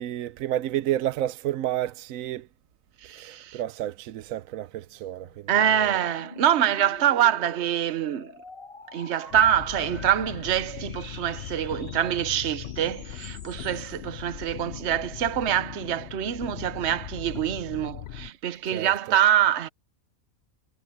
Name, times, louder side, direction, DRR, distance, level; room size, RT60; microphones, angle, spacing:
voice 1, 0.0-2.5 3.2-5.5 5.8-5.9 18.7-19.2, right 13 dB, 75° right, 1.0 m, -30 dB
voice 2, 3.0-3.6 5.5-8.3 8.9-19.7, right 10 dB, 55° right, 1.1 m, -25 dB
sound 1, 4.3-14.0, left 3 dB, 40° left, 1.6 m, -48 dB
sound 2, 9.3-18.3, left 12 dB, 60° left, 0.7 m, -39 dB
omnidirectional pair, 1.5 m